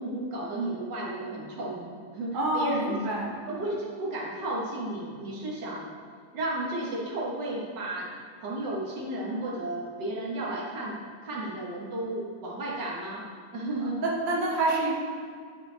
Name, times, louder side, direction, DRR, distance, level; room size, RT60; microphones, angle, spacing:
voice 1, 0.0-3.0 3.5-5.9 6.3-8.1 8.4-11.0 11.2-13.2 13.5-14.1, right 1 dB, 75° right, -4 dB, 2.0 m, -33 dB
voice 2, 2.3-3.3 13.8-14.9, right 2 dB, 30° right, -4 dB, 1.3 m, -27 dB
11.0 x 5.5 x 3.4 m, 2.1 s
omnidirectional pair, 1.9 m